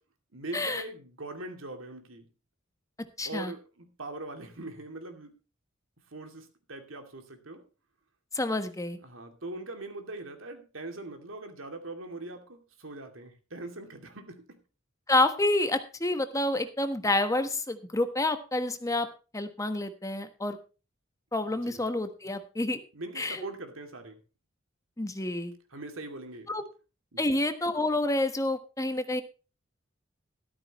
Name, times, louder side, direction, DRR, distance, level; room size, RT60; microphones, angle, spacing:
voice 1, 0.3-2.3 3.2-5.3 6.1-7.6 9.0-14.6 21.4-21.8 22.9-24.2 25.7-26.5 27.1-27.4, right 2 dB, 75° right, 6 dB, 2.6 m, -41 dB
voice 2, 3.2-3.5 8.3-9.0 15.1-19.1 19.3-20.6 21.3-22.8 23.2-23.5 25.0-25.5 26.5-26.6 27.2-29.2, left 2 dB, 15° left, 9 dB, 1.2 m, -28 dB
13.5 x 13.0 x 3.1 m, 0.32 s
head